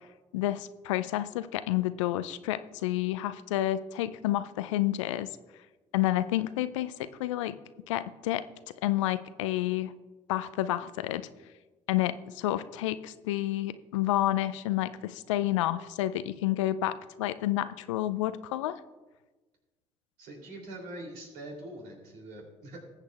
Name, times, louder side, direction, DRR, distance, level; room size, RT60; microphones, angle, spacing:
voice 1, 0.3-5.3 5.9-7.6 7.9-8.4 8.8-9.9 10.3-11.3 11.9-18.8, left 14 dB, 75° left, 14 dB, 0.4 m, -30 dB
voice 2, 20.2-22.8, right 1 dB, 70° right, 0 dB, 3.0 m, -43 dB
19.5 x 8.1 x 2.4 m, 1.2 s
figure-of-eight pair, 50°, 16 cm